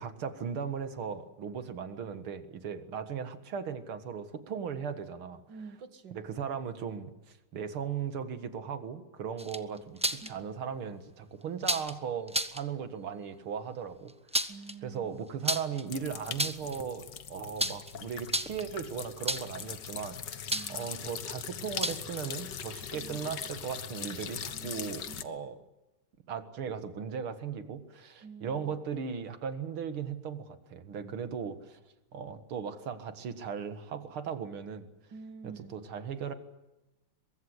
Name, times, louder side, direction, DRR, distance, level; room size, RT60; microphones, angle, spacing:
voice 1, 0.0-5.4 6.1-14.1 14.8-25.6 26.3-31.8 32.1-34.9 35.4-36.3, right 7 dB, 75° right, 10 dB, 2.5 m, -37 dB
voice 2, 5.5-6.2 10.2-10.3 14.5-15.1 20.5-20.9 22.9-23.3 24.5-25.2 28.2-28.7 31.0-31.1 35.1-35.8, right 4 dB, 55° right, 10 dB, 2.4 m, -48 dB
sound 1, 9.4-10.3 11.6-11.9 12.3-12.6 14.1-14.7 15.4-15.8 16.2-16.8 17.6-17.9 18.2-18.7 19.3-19.6 20.5-20.8 21.8-22.2, right 1 dB, 10° right, 0.4 m, -31 dB
sound 2, 15.9-25.2, left 8 dB, 55° left, 1.7 m, -41 dB
23.0 x 23.0 x 8.1 m, 0.98 s
omnidirectional pair, 2.4 m